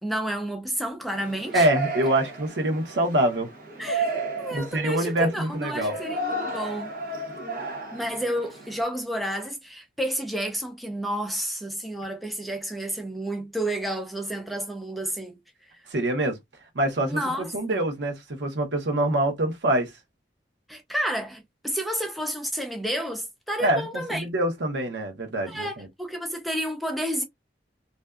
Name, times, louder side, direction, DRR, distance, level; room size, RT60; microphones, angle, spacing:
voice 1, 0.0-1.7 3.8-4.1 4.4-6.9 7.9-15.4 17.1-17.8 20.7-24.3 25.5-27.2, equal, ahead, 0.4 m, -30 dB
Yell, 1.1-8.8, right 2 dB, 50° right, 0.7 m, -33 dB
voice 2, 1.5-3.5 4.5-5.9 15.9-16.4 16.7-18.1 18.4-19.9 23.6-25.9, right 1 dB, 80° right, 0.8 m, -25 dB
2.5 x 2.2 x 2.2 m
head